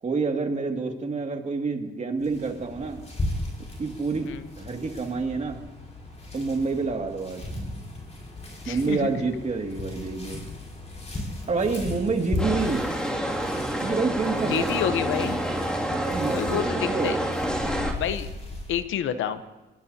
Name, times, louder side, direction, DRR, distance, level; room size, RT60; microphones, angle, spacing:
voice 1, 0.0-3.0 3.8-4.3 4.6-5.6 6.3-7.4 8.7-10.4 11.5-12.8 13.8-14.7 16.0-17.2, right 4 dB, 35° right, 3 dB, 2.2 m, -28 dB
sound 1, 2.2-18.8, left 2 dB, 35° left, 5.9 m, -37 dB
voice 2, 8.6-9.1 14.5-15.4 16.3-16.8 17.0-17.2 18.0-18.3 18.7-19.4, left 10 dB, 80° left, 12 dB, 0.9 m, -28 dB
sound 2, 12.4-17.9, right 1 dB, 5° left, 2.4 m, -28 dB
21.5 x 16.5 x 2.8 m, 1.2 s
cardioid pair, 90°, 20 cm